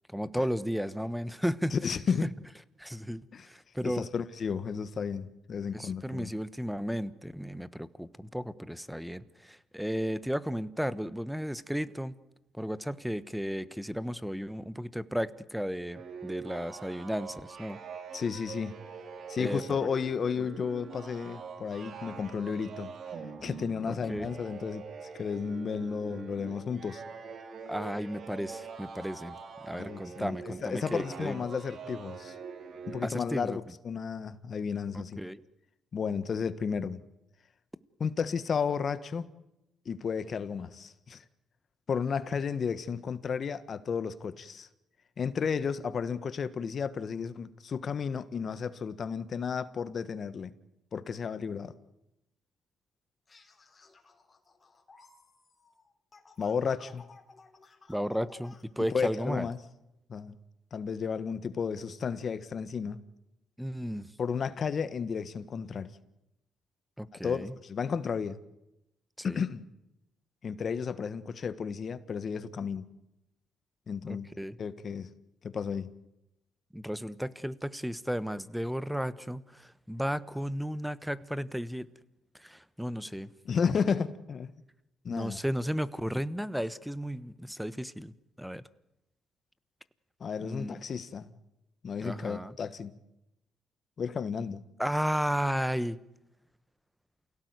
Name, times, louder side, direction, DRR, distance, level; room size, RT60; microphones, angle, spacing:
voice 1, 0.1-1.7 2.2-2.3 2.8-4.1 5.7-12.1 12.5-17.8 19.4-19.8 24.1-24.3 27.7-29.4 29.6-31.4 33.0-33.6 34.9-35.4 57.9-59.5 63.6-64.1 67.0-67.5 69.2-69.4 74.1-74.6 76.7-81.9 82.3-83.3 85.1-88.6 90.4-90.7 92.0-92.6 94.8-96.0, equal, ahead, 1.2 m, -34 dB
voice 2, 1.7-2.3 3.3-3.5 3.8-6.3 18.1-18.8 19.3-22.9 23.4-27.0 29.8-32.3 32.9-35.2 35.9-37.0 38.0-39.3 39.8-41.2 41.9-44.7 45.2-50.5 50.9-51.7 56.4-57.0 58.9-59.6 60.1-60.4 60.7-63.0 64.2-65.9 67.2-68.4 69.2-69.6 70.4-72.9 73.9-74.3 74.6-75.1 75.4-75.9 83.4-84.5 85.0-85.4 90.2-91.3 91.8-93.0 94.0-94.7, left 6 dB, 50° left, 1.4 m, -33 dB
sound 1, 15.9-33.0, right 6 dB, 55° right, 3.1 m, -44 dB
sound 2, 53.3-58.6, left 4 dB, 30° left, 3.8 m, -57 dB
28.5 x 17.5 x 9.6 m
cardioid pair, 90°, 0 cm